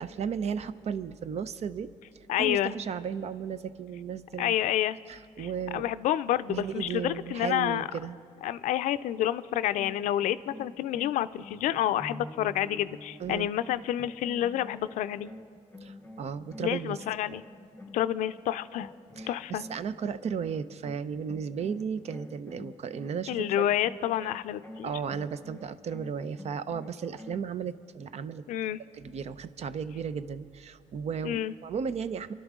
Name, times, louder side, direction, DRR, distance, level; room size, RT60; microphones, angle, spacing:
voice 1, 0.0-1.9 2.4-4.6 5.1-5.9 6.5-8.2 13.2-13.5 15.8-17.0 19.2-23.7 24.8-28.4 29.0-32.3, right 7 dB, 60° right, 13 dB, 0.6 m, -35 dB
voice 2, 2.3-2.8 4.4-5.0 5.4-5.5 5.7-7.9 8.4-15.3 16.6-17.4 17.9-18.9 19.3-19.6 23.3-25.0 28.5-28.8 31.2-31.5, left 12 dB, 90° left, 14 dB, 0.4 m, -29 dB
sound 1, 9.7-18.4 18.8-27.5, left 1 dB, 10° left, 0.8 m, -47 dB
26.5 x 11.5 x 3.7 m, 2.1 s
cardioid pair, 90°, 13 cm